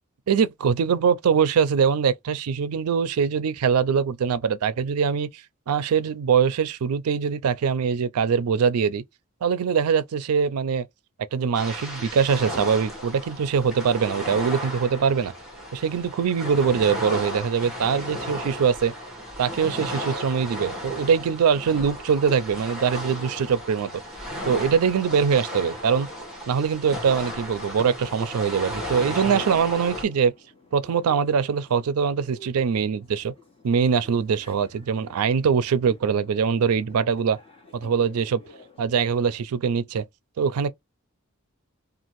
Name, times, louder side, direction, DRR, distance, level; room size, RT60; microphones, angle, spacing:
voice 1, 0.3-5.3 5.7-9.0 9.4-10.9 11.2-15.3 15.7-18.9 19.4-23.9 24.5-26.1 26.5-30.3 30.7-33.3 33.6-37.4 37.7-38.4 38.8-40.0 40.4-40.7, right 6 dB, 85° right, 0.4 m, -23 dB
sound 1, 11.5-30.0, equal, ahead, 1.1 m, -34 dB
sound 2, 24.1-38.9, left 2 dB, 25° left, 1.3 m, -52 dB
2.6 x 2.4 x 2.9 m
head